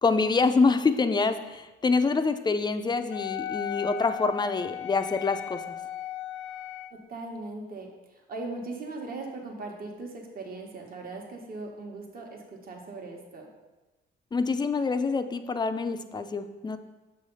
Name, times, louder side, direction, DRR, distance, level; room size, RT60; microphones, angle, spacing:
voice 1, 0.0-5.6 14.3-16.8, left 4 dB, 20° left, 9 dB, 0.4 m, -26 dB
Wind instrument woodwind instrument, 3.1-7.0, left 10 dB, 90° left, 0.4 m, -36 dB
voice 2, 6.9-13.5, right 3 dB, 50° right, 1 dB, 1.2 m, -39 dB
6.8 x 3.3 x 5.4 m, 1.1 s
cardioid pair, 90°, 20 cm